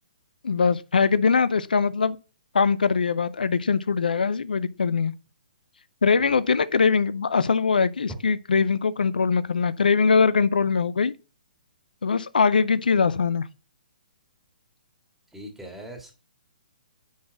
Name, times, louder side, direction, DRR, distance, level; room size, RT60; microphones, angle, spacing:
voice 1, 0.4-2.2 2.5-5.1 6.0-11.1 12.0-13.5, left 5 dB, 85° left, 0.5 m, -22 dB
voice 2, 15.3-16.1, right 1 dB, 5° right, 2.0 m, -41 dB
9.5 x 4.0 x 4.0 m
hypercardioid pair, 140°, 5 cm